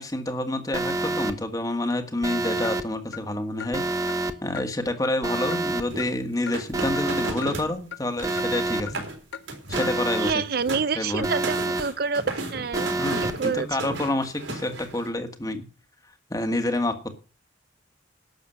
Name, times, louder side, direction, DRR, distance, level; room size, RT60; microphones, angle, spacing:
voice 1, 0.0-3.8 4.4-9.1 9.7-10.3 10.9-11.3 13.0-15.7 16.3-17.2, left 1 dB, 20° left, 1.5 m, -28 dB
Alarm, 0.7-1.3 2.2-2.8 3.7-4.3 5.2-5.8 6.7-7.3 8.2-8.8 9.7-10.3 11.2-11.8 12.7-13.3, right 2 dB, 15° right, 0.9 m, -27 dB
Clock, 2.6-2.8 3.1-3.2 3.6-3.7 4.1-4.2 4.6-4.7 5.0-5.2 5.5-5.6 6.0-6.1 6.5-6.6 7.0-7.1 7.4-7.5 7.9-8.0 8.4-8.5 8.9-9.0 9.3-9.5 9.8-9.9, left 7 dB, 75° left, 0.9 m, -37 dB
sound 1, 5.9-7.7 8.0-8.5 8.8-9.2 9.5-10.0 10.4-15.1, right 2 dB, 85° right, 3.9 m, -34 dB
voice 2, 10.2-12.9 13.2-13.7, right 5 dB, 50° right, 0.5 m, -27 dB
12.0 x 7.0 x 7.8 m
head